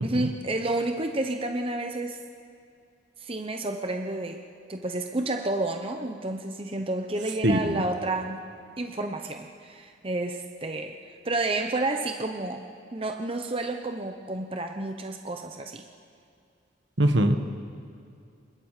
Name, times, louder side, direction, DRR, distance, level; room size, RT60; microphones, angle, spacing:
voice 1, 0.0-2.2 3.2-4.4 4.7-8.4 8.8-11.0 11.2-12.6 12.9-15.8, right 2 dB, 30° right, 4 dB, 0.9 m, -30 dB
voice 2, 7.4-7.8 17.0-17.4, right 1 dB, 70° right, 7 dB, 1.6 m, -22 dB
28.0 x 24.5 x 5.0 m, 2.4 s
head